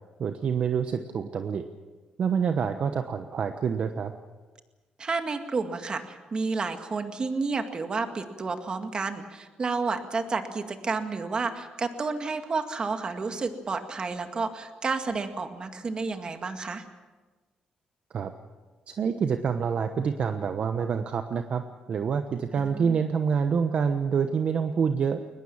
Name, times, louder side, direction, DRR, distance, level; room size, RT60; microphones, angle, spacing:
voice 1, 0.2-1.6 2.2-4.1 18.1-18.3 18.9-21.6 21.9-25.2, right 6 dB, 50° right, 8 dB, 1.1 m, -27 dB
voice 2, 5.0-16.8 22.5-23.0, right 4 dB, 35° right, 7 dB, 2.1 m, -31 dB
22.0 x 20.0 x 7.3 m, 1.3 s
cardioid pair, 115°, 3 cm